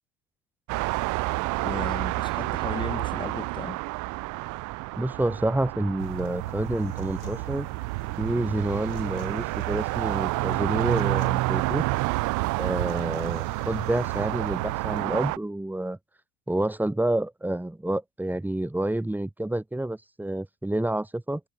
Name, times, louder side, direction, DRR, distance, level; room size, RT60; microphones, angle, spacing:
sound 1, 0.7-15.4, right 23 dB, 60° right, 2.3 m, -30 dB
voice 1, 1.6-3.8, left 4 dB, 15° left, 1.9 m, -36 dB
voice 2, 5.0-7.7 8.2-11.9 12.6-16.0 16.5-21.4, right 1 dB, 5° right, 3.3 m, -28 dB
sound 2, 6.0-15.0, right 22 dB, 85° right, 1.1 m, -35 dB
Human voice / Acoustic guitar, 6.3-14.3, left 22 dB, 85° left, 3.6 m, -51 dB
supercardioid pair, 125°, 34 cm